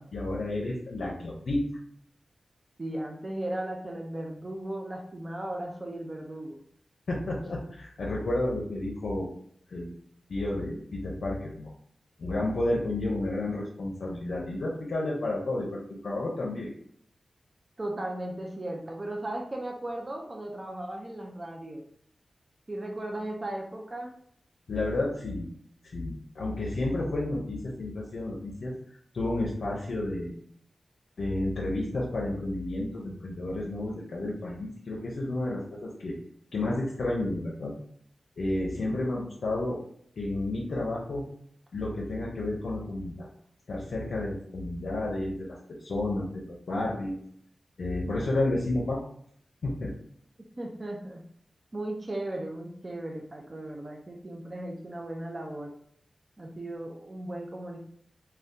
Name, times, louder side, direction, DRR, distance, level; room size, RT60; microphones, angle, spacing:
voice 1, 0.0-1.6 7.1-9.3 9.7-9.9 10.3-11.7 12.2-16.7 24.7-25.5 25.9-28.7 29.1-30.3 31.2-36.1 36.5-37.7 38.4-39.8 40.2-41.2 41.7-43.3 43.7-45.6 45.8-47.2 47.8-49.1 49.6-49.9, left 2 dB, 75° left, -3 dB, 0.5 m, -31 dB
voice 2, 2.8-6.6 17.8-21.8 22.7-24.1 50.6-51.2 51.7-55.7 56.4-57.8, right 1 dB, 35° right, 0 dB, 0.5 m, -36 dB
2.6 x 2.2 x 3.5 m, 0.65 s
wide cardioid pair, 90°, 0 cm